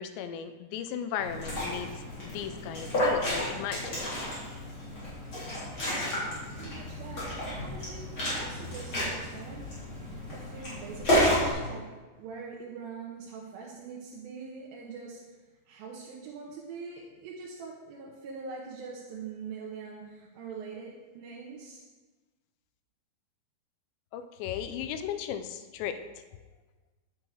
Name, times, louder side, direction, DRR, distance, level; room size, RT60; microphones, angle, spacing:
voice 1, 0.0-1.9 2.2-4.3 24.1-26.0, left 9 dB, 85° left, 9 dB, 2.9 m, -36 dB
Liquid, 1.2-11.5, equal, 30° left, 4.3 m, -31 dB
voice 2, 5.9-8.0 8.3-9.7 9.9-11.8 12.1-15.2 15.7-21.8, right 5 dB, 70° right, -3 dB, 2.6 m, -43 dB
11.0 x 8.0 x 4.5 m, 1.3 s
omnidirectional pair, 5.0 m